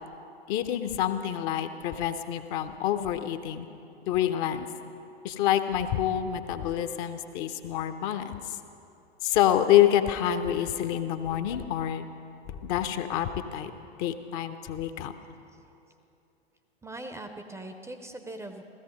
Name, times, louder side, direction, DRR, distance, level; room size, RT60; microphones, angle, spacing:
voice 1, 0.5-3.7 4.1-4.7 5.2-8.6 9.2-12.1 12.5-13.7 14.0-15.1, left 11 dB, 35° left, 9 dB, 0.8 m, -27 dB
voice 2, 16.8-18.6, right 1 dB, 10° right, 6 dB, 0.6 m, -40 dB
16.0 x 14.0 x 5.3 m, 2.7 s
figure-of-eight pair, 95°, 32 cm